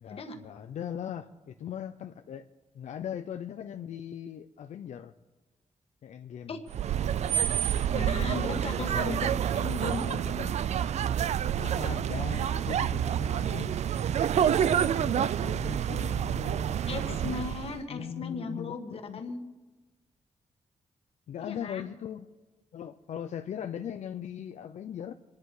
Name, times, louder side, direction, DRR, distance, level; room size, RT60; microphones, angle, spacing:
voice 1, 0.0-2.5 2.7-5.1 6.0-6.6 7.9-9.3 10.0-10.6 11.6-13.8 14.3-17.3 17.9-19.2 21.3-22.3 22.7-25.1, left 9 dB, 90° left, 7 dB, 0.6 m, -40 dB
sound 1, 6.7-17.8, right 9 dB, 70° right, 0.4 m, -28 dB
voice 2, 7.9-10.0 14.9-15.0 16.9-19.4 21.4-21.9, left 4 dB, 55° left, 5 dB, 1.7 m, -37 dB
27.0 x 10.5 x 4.9 m, 1.2 s
wide cardioid pair, 175°, 12 cm